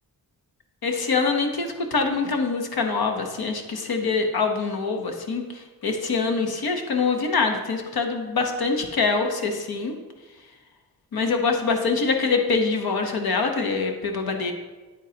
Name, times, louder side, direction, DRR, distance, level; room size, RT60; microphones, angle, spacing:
voice 1, 0.8-9.9 11.1-14.5, left 4 dB, 75° left, 4 dB, 1.1 m, -24 dB
9.2 x 9.1 x 2.8 m, 1.3 s
wide cardioid pair, 120°, 37 cm